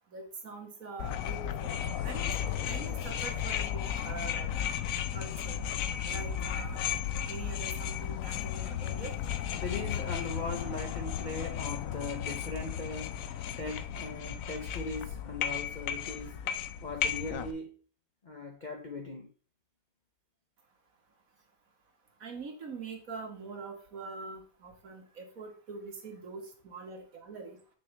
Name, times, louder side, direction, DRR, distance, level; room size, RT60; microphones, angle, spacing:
voice 1, 0.1-2.3 2.6-4.5 5.1-5.6 6.0-6.8 7.3-9.1 22.2-27.6, right 4 dB, 55° right, 1.9 m, -44 dB
sound 1, 1.0-17.5, left 9 dB, 65° left, 0.9 m, -34 dB
voice 2, 9.5-13.2 13.6-16.4 16.8-17.7 18.2-19.3, left 3 dB, 45° left, 0.6 m, -39 dB
7.6 x 6.5 x 3.3 m
omnidirectional pair, 1.8 m